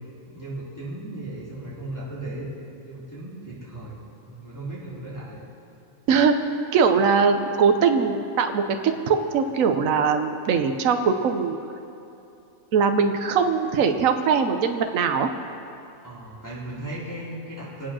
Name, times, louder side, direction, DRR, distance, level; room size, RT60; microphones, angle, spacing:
voice 1, 0.2-2.6 2.8-4.0 4.3-5.4 16.0-17.9, right 1 dB, 10° left, -10 dB, 4.0 m, -36 dB
voice 2, 6.1-6.5 6.7-11.6 12.7-15.3, right 6 dB, 70° right, 6 dB, 1.2 m, -21 dB
25.5 x 8.5 x 6.2 m, 2.7 s
omnidirectional pair, 1.5 m